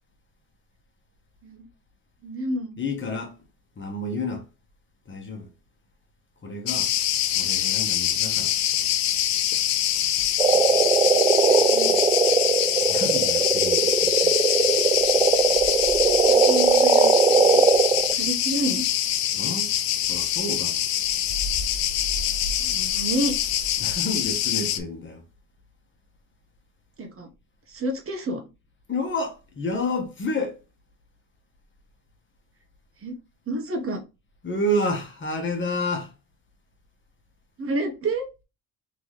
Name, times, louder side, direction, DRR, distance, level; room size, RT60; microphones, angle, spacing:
voice 1, 2.2-2.8 11.7-12.0 16.3-17.6 18.2-18.9 22.6-23.3 27.0-27.3 27.7-28.4 33.0-33.1 33.5-34.0 37.6-38.3, right 1 dB, 40° right, 1.3 m, -29 dB
voice 2, 2.8-3.4 3.7-4.5 5.0-5.5 6.4-6.9 7.3-8.6 12.9-14.3 19.3-20.9 23.8-25.2 28.9-30.6 34.4-36.1, left 1 dB, 35° left, 1.5 m, -30 dB
Cricket, 6.7-24.8, left 11 dB, 80° left, 0.7 m, -24 dB
sound 1, 10.4-18.1, right 4 dB, 15° right, 0.4 m, -20 dB
3.8 x 3.8 x 3.2 m
cardioid pair, 95°, 35 cm